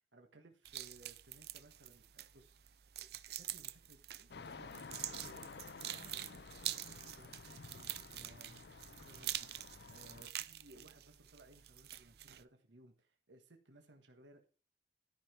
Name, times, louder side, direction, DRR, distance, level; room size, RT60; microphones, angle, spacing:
voice 1, 0.1-14.4, right 2 dB, 85° right, 5 dB, 1.5 m, -62 dB
sound 1, 0.7-12.4, right 13 dB, 60° right, 0.6 m, -46 dB
sound 2, 4.3-10.3, left 4 dB, 65° left, 0.5 m, -52 dB
13.5 x 5.8 x 4.4 m, 0.37 s
head